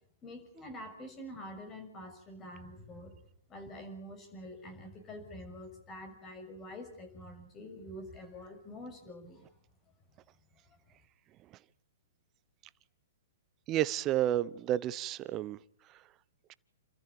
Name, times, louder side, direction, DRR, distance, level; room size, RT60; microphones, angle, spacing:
voice 1, 0.2-3.1 3.5-9.5, equal, 20° left, 6.7 m, -46 dB
voice 2, 13.7-15.6, right 12 dB, 30° right, 0.9 m, -30 dB
30.0 x 14.0 x 9.7 m
hypercardioid pair, 135°, 0 cm